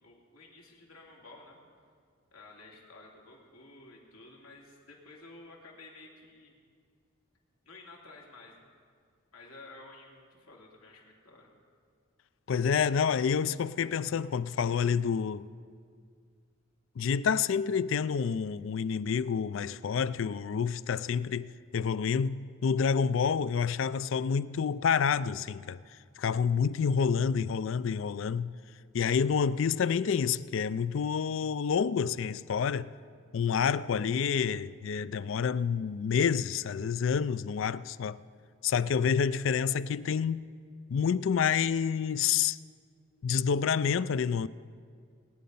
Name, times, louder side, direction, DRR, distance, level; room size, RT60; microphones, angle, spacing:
voice 1, 0.0-1.6 2.3-6.6 7.6-8.7 9.3-11.5, left 2 dB, 90° left, 2.8 m, -52 dB
voice 2, 12.5-15.5 17.0-25.8 26.2-28.6 28.9-32.9 33.3-38.2 38.6-40.5 40.9-42.6 43.2-44.5, left 6 dB, 70° left, 0.4 m, -28 dB
20.0 x 9.5 x 5.4 m
head